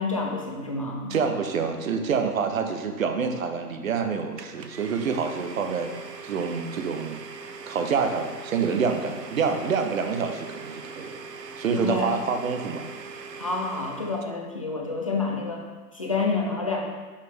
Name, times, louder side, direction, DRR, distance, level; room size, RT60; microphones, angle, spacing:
voice 1, 0.0-1.1 11.7-12.1 13.4-15.7 15.9-16.8, left 3 dB, 25° left, -1 dB, 0.3 m, -28 dB
voice 2, 1.1-5.9 6.2-7.2 7.7-11.2 11.6-12.8, right 5 dB, 55° right, 6 dB, 0.8 m, -27 dB
Domestic sounds home sounds, 4.4-14.3, right 4 dB, 90° right, 0.6 m, -41 dB
6.0 x 5.6 x 3.2 m, 1.4 s
figure-of-eight pair, 115°, 48 cm